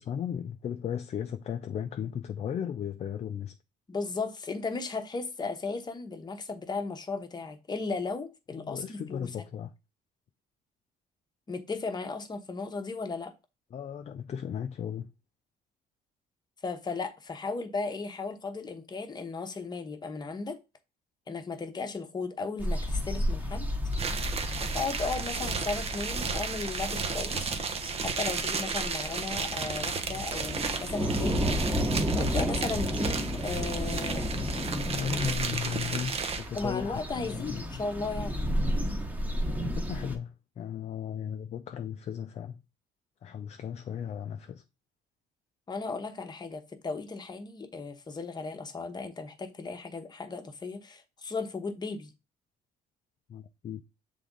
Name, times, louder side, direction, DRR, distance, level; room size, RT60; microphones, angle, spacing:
voice 1, 0.0-3.6 8.5-9.7 13.7-15.1 34.3-37.8 39.5-42.6 43.2-44.6 53.3-53.8, left 8 dB, 40° left, 0.5 m, -36 dB
voice 2, 3.9-9.3 11.5-13.3 16.6-20.6 21.3-23.7 24.7-27.6 28.0-31.4 32.1-34.3 36.5-38.5 45.7-52.1, left 4 dB, 25° left, 1.0 m, -35 dB
sound 1, 22.6-40.1, equal, 10° right, 1.2 m, -32 dB
sound 2, 23.9-36.6, right 5 dB, 35° right, 0.9 m, -34 dB
6.8 x 3.7 x 3.8 m
cardioid pair, 110°, 17 cm